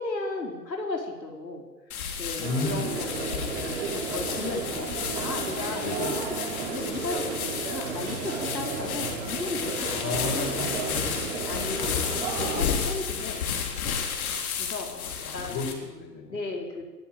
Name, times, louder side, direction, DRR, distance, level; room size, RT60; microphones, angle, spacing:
voice 1, 0.0-1.6 2.2-4.9 5.2-5.8 6.3-6.4 6.7-10.9 11.5-14.0 14.6-15.1 15.3-15.6 16.3-16.8, left 3 dB, 90° left, 1 dB, 4.7 m, -35 dB
sound 1, 1.9-15.7, left 7 dB, 60° left, 4.3 m, -32 dB
voice 2, 2.4-3.0 5.8-6.2 8.8-9.3 9.9-10.7 14.8-16.4, left 3 dB, 30° left, 4 dB, 5.4 m, -34 dB
sound 2, 2.4-12.7, right 5 dB, 45° right, 6.3 m, -33 dB
23.0 x 13.5 x 8.9 m, 1.2 s
hypercardioid pair, 125°, 49 cm